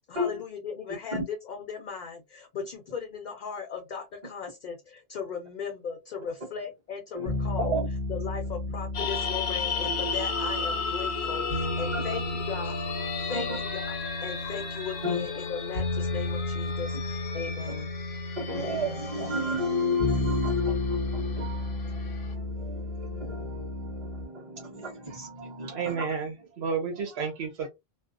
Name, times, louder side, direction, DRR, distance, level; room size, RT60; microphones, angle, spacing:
voice 1, 0.1-7.8 8.1-12.9 13.2-13.9 14.2-17.9, left 6 dB, 55° left, 0.6 m, -37 dB
sound 1, 7.3-24.3, left 2 dB, 75° right, 1.5 m, -33 dB
sound 2, 8.9-22.3, left 6 dB, 80° left, 0.9 m, -35 dB
sound 3, 9.8-13.8 14.1-14.4, equal, 5° right, 0.3 m, -40 dB
voice 2, 18.4-26.2, left 1 dB, 30° right, 1.2 m, -32 dB
voice 3, 25.4-27.7, right 5 dB, 90° right, 1.0 m, -32 dB
2.7 x 2.0 x 2.4 m
omnidirectional pair, 1.1 m